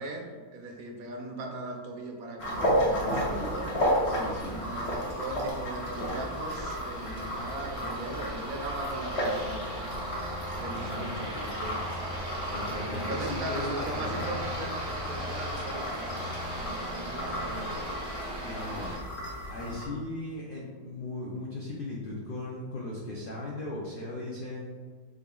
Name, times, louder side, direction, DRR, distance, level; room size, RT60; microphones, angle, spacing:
voice 1, 0.0-3.8 4.4-10.1 10.6-11.8 12.9-14.8 15.1-17.9, right 1 dB, 75° right, 1 dB, 1.1 m, -39 dB
sound 1, 2.4-19.9, equal, 55° left, 0.9 m, -33 dB
Aircraft, 2.7-19.0, equal, 25° right, 0.8 m, -38 dB
voice 2, 4.0-4.6 10.5-11.2 12.5-14.4 18.4-18.9 19.5-24.8, left 2 dB, 75° left, -4 dB, 0.5 m, -38 dB
3.6 x 3.4 x 2.2 m, 1.5 s
omnidirectional pair, 1.6 m